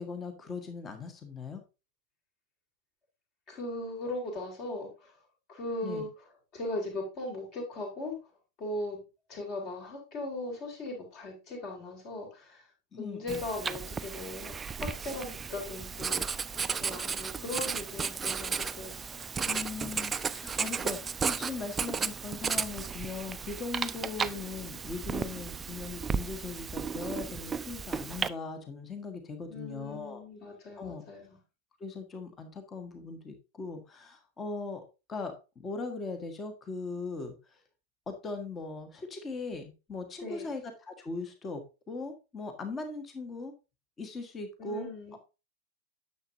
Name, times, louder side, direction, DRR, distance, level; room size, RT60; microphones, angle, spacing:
voice 1, 0.0-1.6 5.8-6.0 12.9-13.4 19.4-30.2 30.8-31.0 31.8-34.8 35.1-37.6 38.1-41.6 41.9-43.5 44.0-45.2, left 4 dB, 20° left, 6 dB, 1.6 m, -39 dB
voice 2, 3.5-5.1 5.5-6.1 6.5-8.1 8.6-9.0 9.3-12.7 13.0-16.5 16.8-19.3 29.5-31.4 40.2-40.5 44.6-45.2, left 1 dB, 35° left, 2 dB, 3.7 m, -38 dB
Writing, 13.3-28.3, right 5 dB, 15° right, 0.4 m, -34 dB
10.0 x 7.1 x 2.7 m, 0.29 s
figure-of-eight pair, 90°, 0 cm